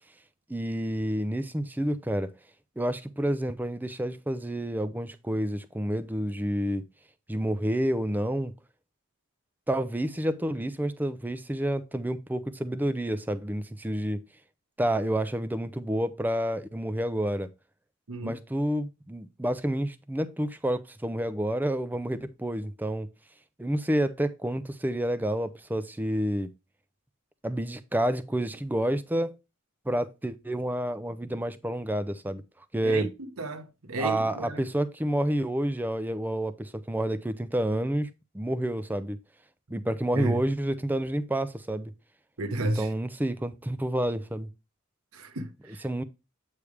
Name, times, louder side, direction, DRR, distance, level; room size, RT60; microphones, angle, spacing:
voice 1, 0.5-2.3 2.8-6.9 7.3-8.5 9.7-14.2 14.8-17.5 18.2-23.1 23.6-26.5 27.4-29.4 29.9-32.4 32.7-33.1 34.0-38.1 38.3-39.2 39.7-41.9 42.6-44.5 45.8-46.0, right 1 dB, 10° right, 0.4 m, -29 dB
voice 2, 33.4-34.7 40.1-40.4 42.4-42.9 45.1-45.9, right 2 dB, 80° right, 1.0 m, -32 dB
8.3 x 3.3 x 4.9 m
head